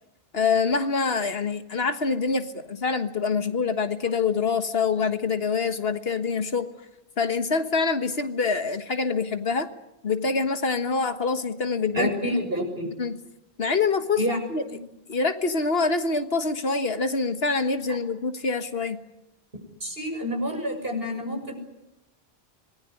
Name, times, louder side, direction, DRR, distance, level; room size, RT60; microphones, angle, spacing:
voice 1, 0.3-6.7 7.2-9.7 10.0-12.1 13.0-13.2 13.6-14.2 14.5-14.6 15.1-19.0, left 4 dB, 70° left, 9 dB, 1.7 m, -25 dB
voice 2, 11.9-12.9 14.2-14.4 14.7-14.8 19.8-21.5, equal, 65° right, 3 dB, 7.0 m, -28 dB
26.5 x 20.5 x 9.9 m, 0.92 s
omnidirectional pair, 1.1 m